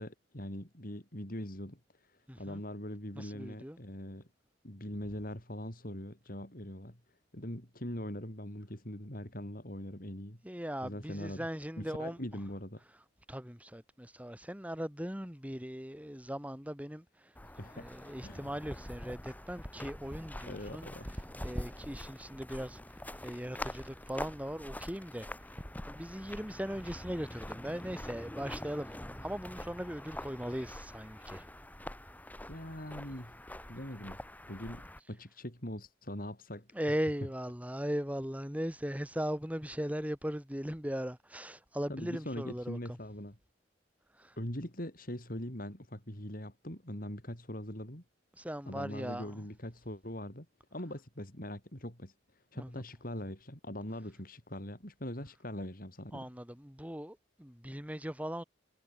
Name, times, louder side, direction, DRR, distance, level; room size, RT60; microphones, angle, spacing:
voice 1, 0.0-4.3 4.6-10.4 10.8-11.5 11.8-12.8 17.4-17.9 18.2-18.5 20.4-21.1 32.5-33.3 33.7-34.2 34.5-37.0 41.9-43.4 44.4-48.0 48.7-50.5 50.7-56.3, left 1 dB, 55° left, 7.6 m, -42 dB
voice 2, 2.3-2.6 3.2-3.8 10.4-12.2 13.3-17.0 17.8-20.9 21.4-22.8 23.2-25.3 25.9-28.9 29.2-31.5 36.7-42.8 44.2-44.3 48.4-49.3 52.5-52.7 56.1-58.4, equal, 10° right, 5.4 m, -39 dB
sound 1, 17.3-35.0, left 1 dB, 10° left, 3.2 m, -45 dB
head